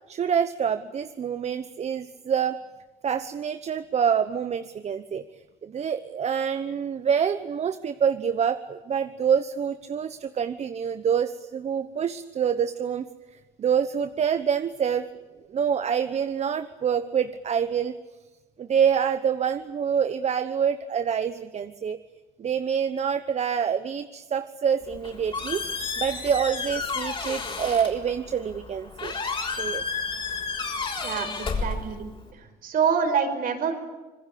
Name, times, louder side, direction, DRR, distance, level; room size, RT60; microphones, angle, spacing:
voice 1, 0.1-2.6 3.0-13.1 13.6-15.1 15.5-17.9 18.6-22.0 22.4-25.6 26.0-29.2 29.6-29.8, right 7 dB, 40° right, 11 dB, 1.0 m, -26 dB
Squeak, 24.8-32.3, left 4 dB, 30° left, 6.3 m, -32 dB
voice 2, 31.0-32.1 32.6-33.7, right 6 dB, 55° right, 6 dB, 5.3 m, -26 dB
26.5 x 21.0 x 8.6 m, 1.2 s
cardioid pair, 110°, 17 cm